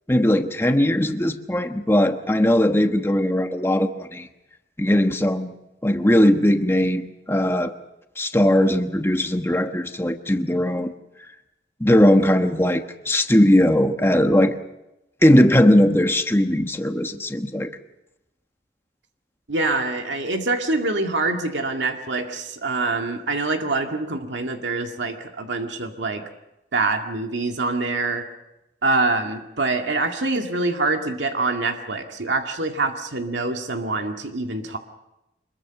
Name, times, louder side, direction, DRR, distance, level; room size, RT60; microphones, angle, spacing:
voice 1, 0.1-4.3 4.8-5.5 5.8-7.7 8.2-10.9 11.8-14.5 15.2-17.7, left 1 dB, 15° left, 6 dB, 1.2 m, -19 dB
voice 2, 19.5-26.2 26.7-28.3 28.8-34.8, right 3 dB, 85° right, 4 dB, 2.0 m, -25 dB
25.5 x 22.0 x 5.9 m, 0.93 s
head